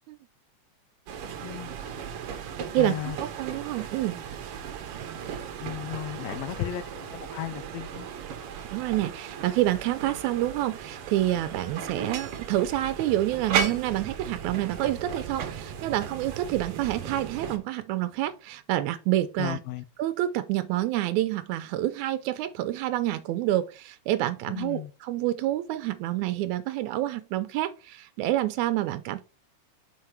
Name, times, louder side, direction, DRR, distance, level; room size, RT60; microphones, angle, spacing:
sound 1, 1.1-17.6, right 7 dB, 65° right, 1.6 m, -36 dB
voice 1, 1.4-1.7 2.8-3.2 5.6-8.1 19.4-19.8 24.5-24.9, left 13 dB, 80° left, 1.7 m, -35 dB
voice 2, 2.7-4.2 8.7-19.6 20.0-29.2, right 14 dB, 85° right, 2.0 m, -28 dB
5.8 x 4.8 x 4.4 m
omnidirectional pair, 3.3 m